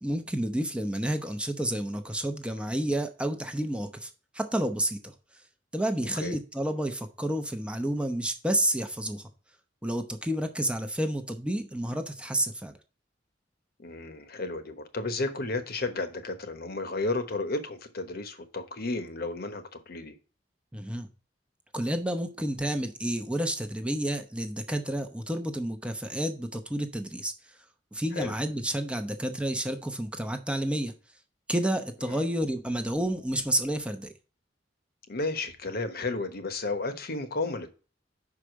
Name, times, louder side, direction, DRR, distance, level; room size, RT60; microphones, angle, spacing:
voice 1, 0.0-4.1 4.3-5.1 5.7-9.3 9.8-12.7 20.7-21.1 21.7-27.3 27.9-30.9 31.5-34.1, right 1 dB, 5° right, 0.8 m, -30 dB
voice 2, 13.8-20.2 28.1-28.3 32.1-32.3 35.1-37.7, left 3 dB, 55° left, 1.1 m, -33 dB
5.7 x 4.9 x 6.2 m
head